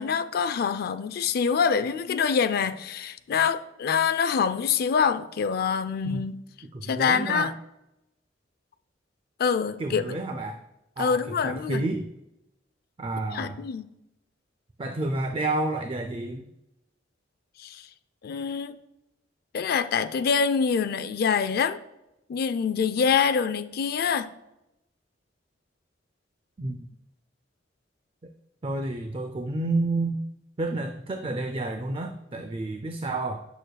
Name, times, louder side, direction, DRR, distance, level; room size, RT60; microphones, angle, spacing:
voice 1, 0.0-6.3 6.8-7.5 9.4-10.2 11.0-11.9 13.3-13.9 17.6-17.8 18.2-18.8 19.5-21.8 22.3-24.3, left 6 dB, 55° left, 0.4 m, -25 dB
voice 2, 6.7-7.5 9.8-10.6 11.0-12.1 13.0-13.6 14.8-16.4 26.6-26.8 28.6-30.2 30.6-33.4, right 2 dB, 30° right, 0.4 m, -30 dB
8.9 x 6.4 x 2.2 m
head